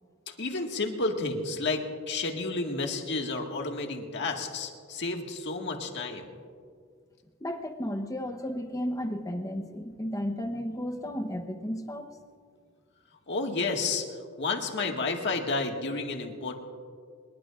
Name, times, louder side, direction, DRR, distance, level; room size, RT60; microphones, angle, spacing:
voice 1, 0.4-6.3 13.3-14.0 14.4-16.6, left 3 dB, 60° left, 2 dB, 1.8 m, -31 dB
voice 2, 7.4-12.1, equal, 15° left, 4 dB, 0.9 m, -33 dB
25.5 x 21.5 x 2.5 m, 2.1 s
head